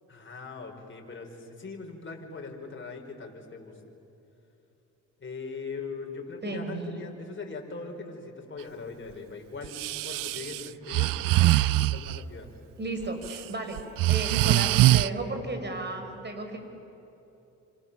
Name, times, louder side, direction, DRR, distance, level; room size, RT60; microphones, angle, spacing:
voice 1, 0.1-3.7 5.2-9.8 10.0-12.5 14.7-14.8, left 4 dB, 40° left, 2 dB, 5.4 m, -41 dB
voice 2, 6.4-7.0 12.8-13.8 14.1-16.7, right 2 dB, 35° right, 5 dB, 5.4 m, -34 dB
Breathing, 9.6-12.2 13.0-13.4 13.8-15.1, right 16 dB, 85° right, 0.6 m, -23 dB
29.5 x 27.0 x 7.2 m, 3.0 s
cardioid pair, 75°, 32 cm